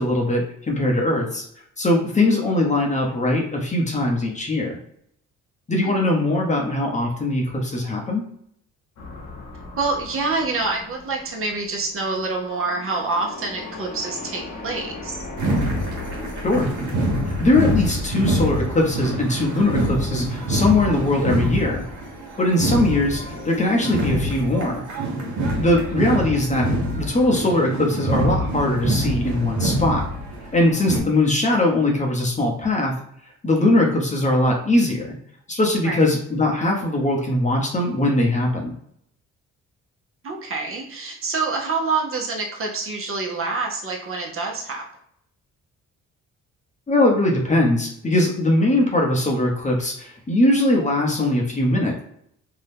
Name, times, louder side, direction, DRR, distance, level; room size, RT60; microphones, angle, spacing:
voice 1, 0.0-1.4 1.8-4.8 5.7-8.3 16.4-16.7 17.3-21.8 22.4-24.8 25.6-26.7 27.0-30.1 30.5-32.9 33.4-35.1 35.5-38.7 46.9-52.0, left 1 dB, 25° left, -1 dB, 0.8 m, -21 dB
sound 1, 9.0-24.1, left 2 dB, 65° left, 0.9 m, -39 dB
voice 2, 9.8-15.2 35.8-36.0 40.2-44.8, right 3 dB, 45° right, -1 dB, 0.9 m, -26 dB
sound 2, 15.4-31.0, right 1 dB, 75° right, 1.0 m, -25 dB
2.7 x 2.2 x 3.5 m, 0.70 s
cardioid pair, 90°, 30 cm